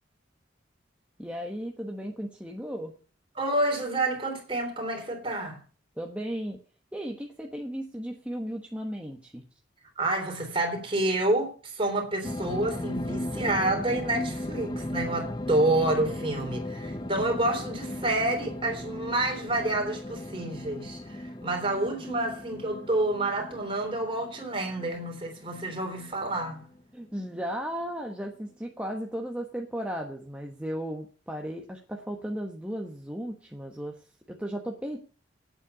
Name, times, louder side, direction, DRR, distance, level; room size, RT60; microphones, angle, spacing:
voice 1, 1.2-2.9 6.0-6.6 6.9-9.4 26.9-35.0, equal, 5° right, 1.2 m, -35 dB
voice 2, 3.4-5.6 10.0-26.6, right 2 dB, 30° right, 3.4 m, -28 dB
sound 1, 12.2-26.8 27.2-27.3, left 1 dB, 20° left, 0.6 m, -37 dB
9.0 x 7.7 x 8.2 m
head